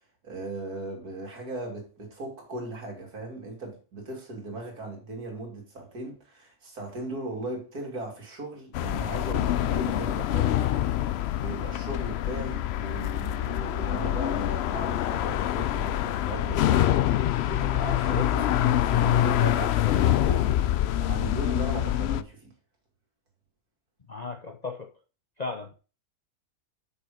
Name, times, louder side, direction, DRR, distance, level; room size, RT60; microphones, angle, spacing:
voice 1, 0.2-10.8 11.3-20.5 21.0-22.5, right 2 dB, 75° right, 3.0 m, -37 dB
sound 1, 8.7-22.2, left 12 dB, 75° left, 0.6 m, -25 dB
voice 2, 24.1-24.9 25.4-25.7, left 3 dB, 35° left, 0.7 m, -35 dB
6.3 x 6.1 x 4.9 m
omnidirectional pair, 1.6 m